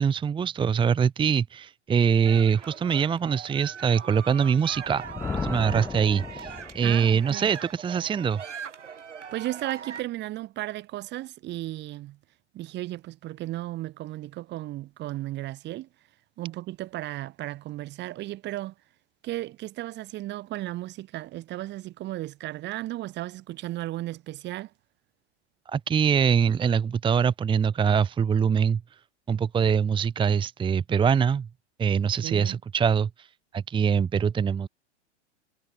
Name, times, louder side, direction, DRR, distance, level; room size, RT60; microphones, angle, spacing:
voice 1, 0.0-5.0 5.4-8.4 25.7-29.0 29.3-31.5 31.8-34.7, right 7 dB, 15° right, 1.1 m, -24 dB
sound 1, 2.2-10.0, right 7 dB, 80° right, 3.4 m, -41 dB
Thunder, 4.7-7.1, left 5 dB, 5° left, 0.4 m, -35 dB
voice 2, 6.8-7.5 9.3-12.2 12.5-15.9 16.4-18.7 19.2-24.7 32.2-32.6, right 16 dB, 30° right, 1.6 m, -35 dB
hypercardioid pair, 105°, 35 cm